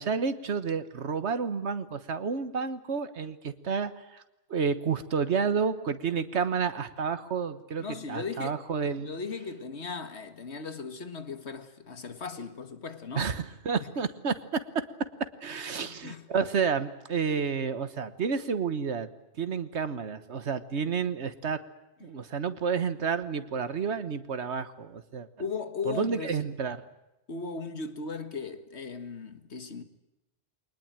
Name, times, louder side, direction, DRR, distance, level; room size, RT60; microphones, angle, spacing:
voice 1, 0.0-4.2 4.5-9.2 13.2-14.9 15.2-19.1 19.4-21.6 22.0-25.3 25.8-26.8, right 6 dB, 90° right, 1.6 m, -30 dB
voice 2, 7.8-8.6 9.0-13.3 15.7-16.3 22.0-22.1 25.4-26.4 27.3-29.8, left 5 dB, 80° left, 1.9 m, -37 dB
23.0 x 20.0 x 9.0 m
omnidirectional pair, 1.1 m